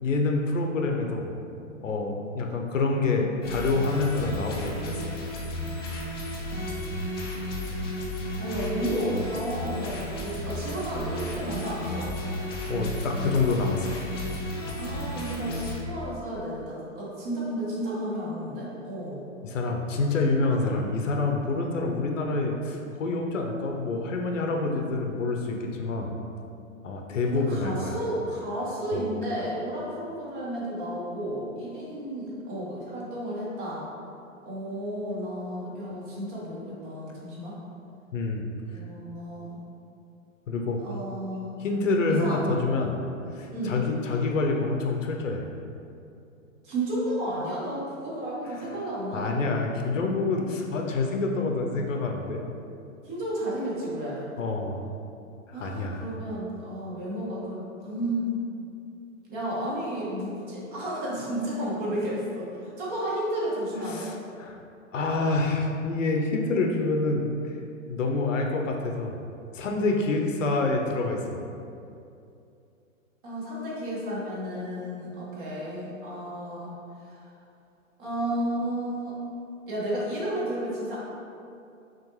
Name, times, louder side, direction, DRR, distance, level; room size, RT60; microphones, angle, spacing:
voice 1, 0.0-1.4 1.8-5.2 12.7-14.0 19.4-26.1 26.8-27.9 28.9-29.0 38.1-38.5 40.5-40.8 41.6-42.9 43.3-45.4 49.1-52.4 54.4-54.8 55.5-56.1 63.9-64.6 64.9-67.6 67.9-69.2 69.5-71.4, left 3 dB, 70° left, 1 dB, 0.7 m, -27 dB
sound 1, 3.4-15.8, left 1 dB, 20° left, 0.3 m, -33 dB
voice 2, 8.4-12.1 14.8-19.2 27.3-33.8 34.4-37.6 38.7-39.6 40.8-41.6 42.2-42.4 42.7-42.9 43.5-43.8 46.6-49.5 53.0-54.3 55.5-58.3 59.3-64.1 73.2-76.7 77.0-77.3 78.0-79.1 79.7-81.0, right 1 dB, 40° right, -6 dB, 1.4 m, -32 dB
5.9 x 2.5 x 3.0 m, 2.6 s
figure-of-eight pair, 120°, 40 cm